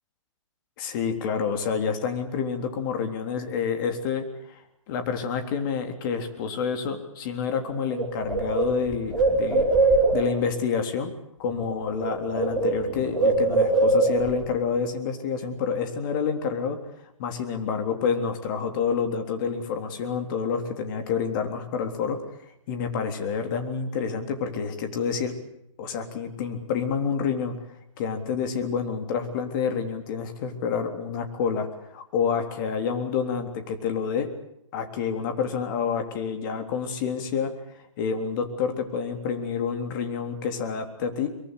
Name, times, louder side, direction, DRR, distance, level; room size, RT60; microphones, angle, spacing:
voice 1, 0.8-9.7 10.1-11.1 11.4-16.8 17.2-22.2 22.5-25.3 25.8-27.6 28.0-34.3 34.7-37.5 38.0-41.3, left 6 dB, 40° left, 6 dB, 3.6 m, -28 dB
Bird, 7.5-7.6 7.9-10.4 11.5-11.7 12.0-14.4, right 3 dB, ahead, 5.4 m, -23 dB
23.5 x 23.0 x 8.3 m, 0.79 s
hypercardioid pair, 155°, 17 cm